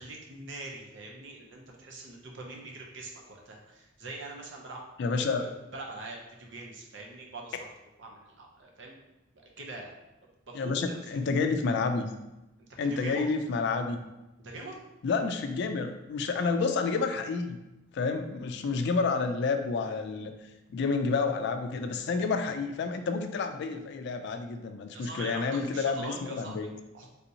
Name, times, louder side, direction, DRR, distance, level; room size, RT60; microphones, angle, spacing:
voice 1, 0.0-4.8 5.3-7.6 8.0-9.0 9.6-9.9 10.5-11.0 13.0-13.3 14.4-14.8 24.9-27.1, right 2 dB, 65° right, 0 dB, 0.6 m, -43 dB
voice 2, 5.0-5.5 10.5-12.1 12.8-14.0 15.0-17.6 17.9-20.3 20.7-26.7, left 4 dB, 60° left, 6 dB, 0.3 m, -29 dB
3.4 x 2.8 x 2.7 m, 0.97 s
head